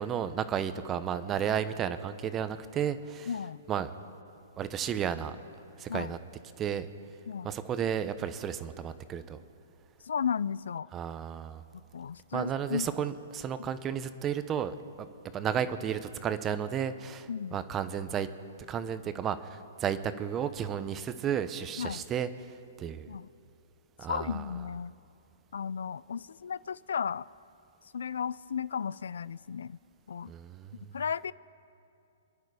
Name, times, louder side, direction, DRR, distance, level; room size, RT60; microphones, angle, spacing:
voice 1, 0.0-3.3 3.7-3.9 4.6-5.4 5.8-6.2 6.6-6.9 7.4-9.4 10.9-11.6 12.3-15.1 15.3-18.3 18.7-23.1 24.0-24.4 30.3-30.9, right 8 dB, 20° right, 12 dB, 0.7 m, -33 dB
voice 2, 3.3-3.6 5.9-6.1 7.3-7.5 10.0-10.9 11.9-12.9 13.6-13.7 17.3-17.6 21.8-22.0 23.1-23.3 24.1-24.9 25.5-27.3 27.9-29.8 30.1-30.3 30.9-31.3, left 7 dB, 85° left, 20 dB, 0.3 m, -34 dB
28.0 x 10.5 x 4.8 m, 2.6 s
hypercardioid pair, 155°, 0 cm